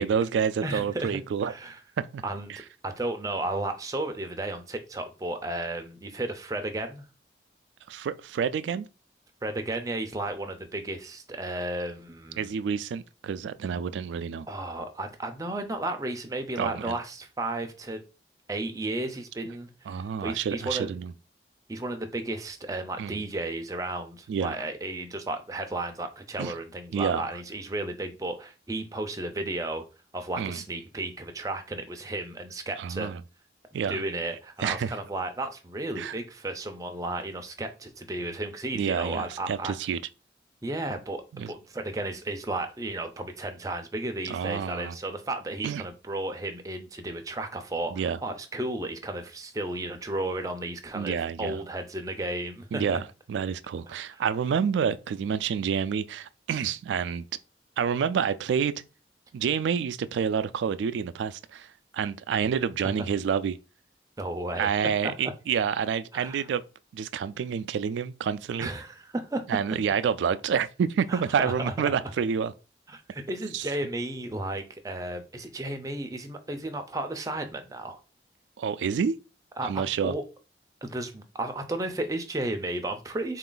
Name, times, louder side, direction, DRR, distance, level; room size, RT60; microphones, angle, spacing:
voice 1, 0.0-1.5 2.1-2.2 2.5-2.6 7.9-8.9 12.4-14.5 16.6-16.9 19.9-21.1 23.0-23.2 24.3-24.5 26.4-26.5 26.9-27.2 30.4-30.6 32.8-33.2 33.7-34.0 34.6-34.9 36.0-36.2 38.7-40.0 41.3-41.5 44.2-45.0 45.6-45.8 47.9-48.2 50.9-51.6 52.7-53.0 53.3-57.2 57.8-58.7 59.3-61.7 61.9-63.6 64.6-66.6 66.9-68.7 69.5-72.5 73.5-73.7 78.6-79.2 79.6-80.1, right 7 dB, 90° right, 0.3 m, -28 dB
voice 2, 0.6-1.8 2.2-7.1 9.4-12.5 14.5-18.0 18.5-20.9 21.7-29.9 30.1-33.1 33.9-39.7 40.6-53.0 53.9-54.2 64.2-64.7 65.0-65.3 66.1-66.4 68.6-69.4 71.1-71.9 72.9-78.0 79.6-80.2 80.8-83.4, right 2 dB, 20° right, 0.5 m, -33 dB
3.8 x 2.5 x 3.8 m
head